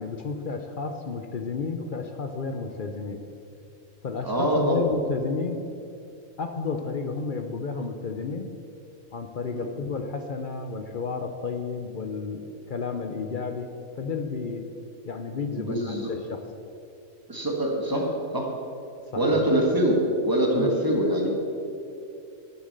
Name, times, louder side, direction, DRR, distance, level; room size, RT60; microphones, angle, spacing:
voice 1, 0.0-3.2 4.0-5.6 6.4-8.5 9.1-13.7 14.0-14.6 15.0-16.4 19.1-19.4 20.5-20.7, left 4 dB, 50° left, 6 dB, 0.7 m, -32 dB
voice 2, 4.2-4.8 9.5-9.7 15.6-16.1 17.3-18.5 19.2-21.3, right 1 dB, 15° right, 0 dB, 1.6 m, -24 dB
11.5 x 7.1 x 6.6 m, 2.6 s
omnidirectional pair, 1.4 m